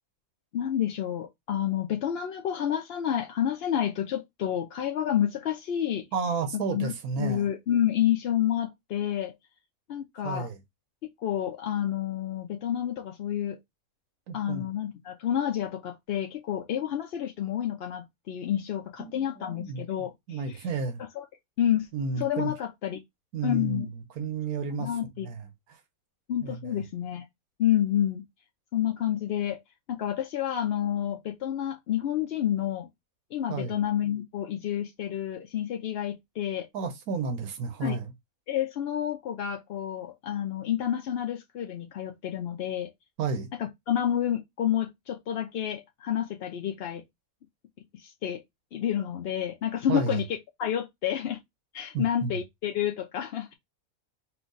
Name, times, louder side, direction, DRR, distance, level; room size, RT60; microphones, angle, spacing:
voice 1, 0.5-6.1 6.5-9.3 9.9-10.5 11.2-13.6 14.3-20.6 21.2-21.3 21.6-21.9 22.2-23.0 23.4-23.9 24.8-25.3 26.3-27.3 27.6-28.2 28.7-29.6 29.9-32.9 33.3-36.7 37.8-38.0 38.5-42.9 43.6-47.0 47.9-48.4 48.7-51.4 51.7-53.5, left 10 dB, 65° left, 0.6 m, -29 dB
voice 2, 6.1-7.5 10.2-10.6 14.3-14.7 19.0-19.8 20.3-21.0 21.9-22.5 23.3-24.9 25.2-25.8 26.4-26.8 33.5-33.8 36.7-38.1 43.2-43.5 49.9-50.2 51.9-52.4, right 4 dB, 85° right, 1.3 m, -32 dB
4.5 x 2.3 x 3.9 m
omnidirectional pair, 1.5 m